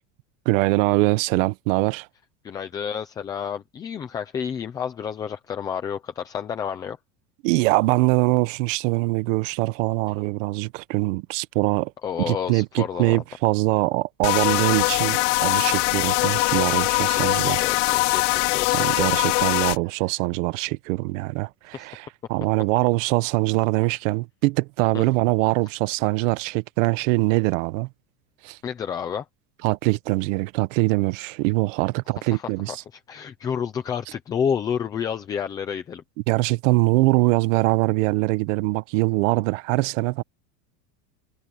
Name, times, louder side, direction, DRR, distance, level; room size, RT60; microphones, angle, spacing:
voice 1, 0.4-2.1 7.4-11.9 12.2-17.6 18.7-27.9 28.4-28.6 29.6-32.8 36.3-40.2, right 21 dB, 55° right, 1.1 m, -23 dB
voice 2, 2.4-7.0 12.0-13.2 17.2-18.8 21.7-21.9 24.9-25.0 28.6-29.3 32.3-36.0, left 7 dB, 10° left, 0.3 m, -30 dB
sound 1, 14.2-19.8, left 22 dB, 50° left, 0.8 m, -22 dB
supercardioid pair, 165°, 47 cm